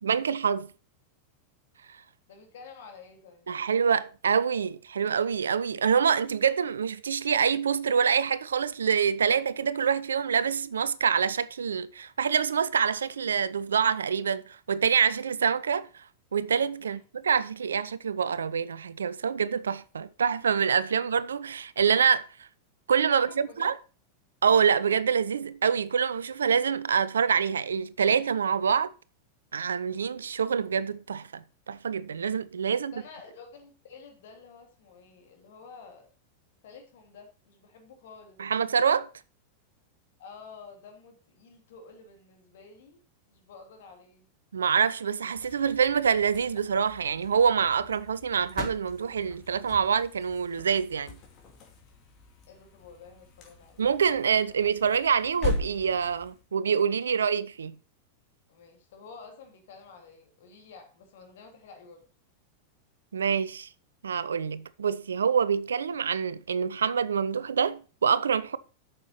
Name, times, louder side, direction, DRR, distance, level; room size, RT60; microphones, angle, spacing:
voice 1, 0.0-0.7 3.5-15.9 16.3-22.5 22.9-23.7 24.4-28.9 29.5-32.9 38.4-39.1 44.5-51.2 53.8-57.8 63.1-63.7 64.0-68.6, right 7 dB, 70° right, 0.5 m, -26 dB
voice 2, 2.3-3.5 16.8-17.0 23.1-23.7 32.7-36.1 36.6-38.4 40.2-43.0 43.3-44.3 52.5-53.8 58.5-62.0, left 5 dB, 55° left, 2.9 m, -50 dB
sound 1, 45.3-56.4, left 4 dB, 35° left, 2.7 m, -40 dB
8.9 x 6.7 x 5.7 m
figure-of-eight pair, 90°, 0 cm